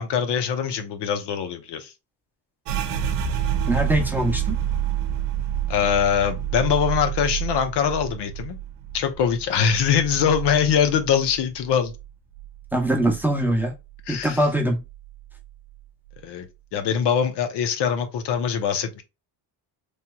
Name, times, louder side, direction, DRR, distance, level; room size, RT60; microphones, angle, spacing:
voice 1, 0.0-1.9 5.7-8.6 8.9-11.9 14.1-14.4 16.2-16.5 16.7-19.0, left 8 dB, 75° left, 0.7 m, -23 dB
sound 1, 2.7-12.1 12.4-13.6 13.9-14.4 14.8-15.4, right 9 dB, 85° right, 0.7 m, -29 dB
voice 2, 3.7-4.6 12.7-13.7 14.1-14.8, right 1 dB, 5° right, 0.7 m, -22 dB
3.2 x 2.8 x 2.2 m
cardioid pair, 130°, 42 cm